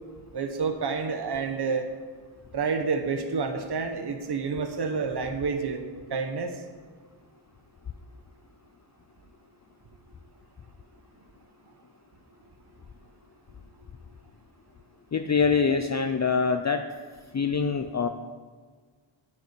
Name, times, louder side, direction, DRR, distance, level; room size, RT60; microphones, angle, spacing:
voice 1, 0.3-1.9 2.5-5.8 6.1-6.5, right 5 dB, 50° right, 5 dB, 1.2 m, -29 dB
voice 2, 15.1-16.8 17.3-18.1, left 5 dB, 35° left, 7 dB, 0.6 m, -24 dB
10.5 x 6.9 x 8.4 m, 1.5 s
wide cardioid pair, 105°, 49 cm